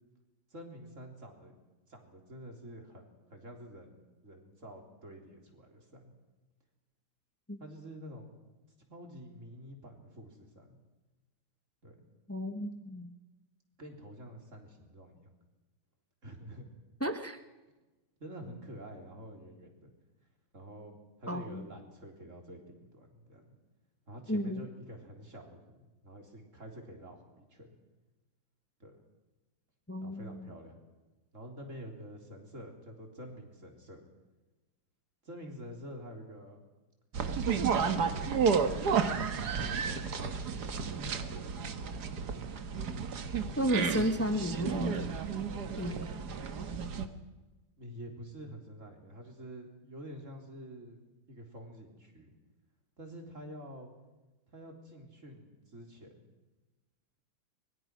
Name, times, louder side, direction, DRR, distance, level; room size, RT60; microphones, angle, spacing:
voice 1, 0.5-1.5 1.9-6.1 7.6-8.3 8.9-10.8 11.8-12.0 13.8-15.3 16.2-16.7 18.2-19.9 20.5-23.6 24.1-27.8 28.8-29.0 30.0-30.8 31.3-34.0 35.2-36.6 37.5-39.0 39.5-41.5 42.0-42.4 47.8-51.0 51.3-52.4 53.0-53.9 54.5-56.1, equal, 35° right, 2 dB, 4.0 m, -48 dB
voice 2, 12.3-13.1 17.0-17.4 21.3-21.7 24.3-24.6 29.9-30.5 43.6-45.2 45.8-46.0, equal, 10° left, 8 dB, 0.8 m, -33 dB
sound 1, 37.1-47.1, right 6 dB, 55° right, 1.8 m, -32 dB
25.0 x 22.0 x 6.2 m, 1.1 s
omnidirectional pair, 2.3 m